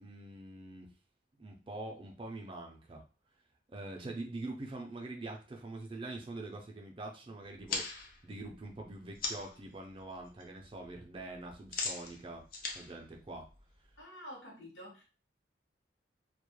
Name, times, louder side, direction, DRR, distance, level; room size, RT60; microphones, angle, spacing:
voice 1, 0.0-0.9 1.4-3.0 3.7-12.4 12.7-13.5, right 2 dB, 25° right, 2 dB, 0.3 m, -44 dB
sound 1, 7.6-9.6 10.0-10.4 10.7-14.0, left 4 dB, 45° left, 0.4 m, -40 dB
voice 2, 14.0-15.0, equal, 75° left, -2 dB, 0.8 m, -48 dB
2.2 x 2.0 x 3.0 m, 0.35 s
head